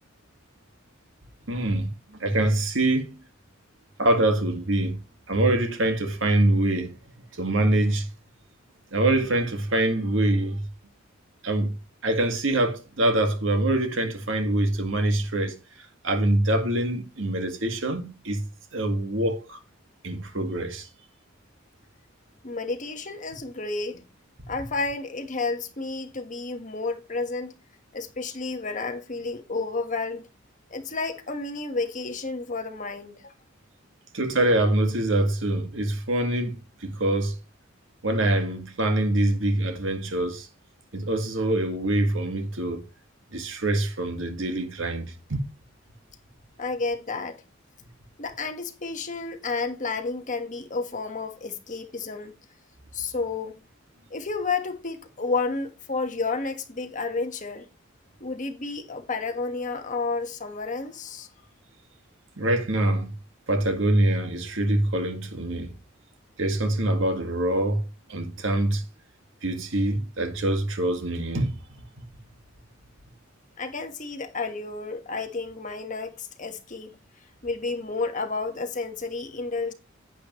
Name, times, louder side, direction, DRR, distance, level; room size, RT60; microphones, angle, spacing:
voice 1, 1.5-3.2 4.0-5.0 5.3-6.9 7.3-8.1 8.9-10.6 11.4-11.8 12.0-15.6 16.0-18.4 18.7-19.6 20.0-20.9 34.1-37.4 38.0-40.5 40.9-42.8 43.3-45.4 62.4-63.1 63.5-65.7 66.4-67.8 68.1-68.8 69.4-71.6, right 1 dB, 70° right, 1.9 m, -24 dB
voice 2, 22.4-24.0 24.5-27.5 27.9-30.3 30.7-33.3 46.6-47.4 48.2-52.3 52.9-53.5 54.1-57.7 58.2-61.3 73.6-77.0 77.4-79.7, left 3 dB, 40° left, 1.4 m, -31 dB
10.5 x 8.5 x 3.1 m
head